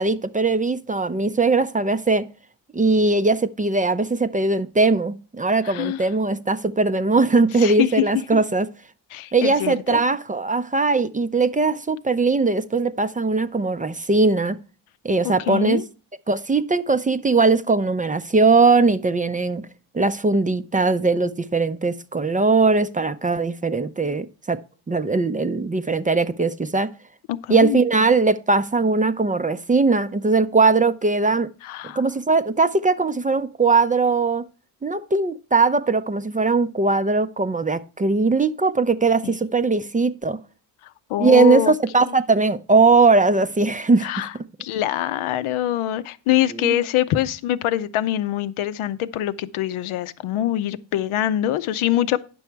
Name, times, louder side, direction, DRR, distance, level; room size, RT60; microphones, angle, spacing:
voice 1, 0.0-2.3 2.7-8.7 9.3-14.6 15.0-15.8 16.3-19.6 19.9-24.6 24.9-26.9 27.5-31.5 32.0-34.4 34.8-40.4 41.2-44.3 46.5-46.7, right 3 dB, 15° right, 0.4 m, -20 dB
voice 2, 5.6-6.0 7.6-8.0 8.3-8.4 9.1-10.0 15.2-15.8 27.3-27.8 31.6-32.0 39.2-39.4 41.1-41.7 42.0-42.1 44.0-44.3 44.6-52.2, left 12 dB, 80° left, 0.7 m, -24 dB
9.6 x 6.1 x 4.5 m
cardioid pair, 75°, 49 cm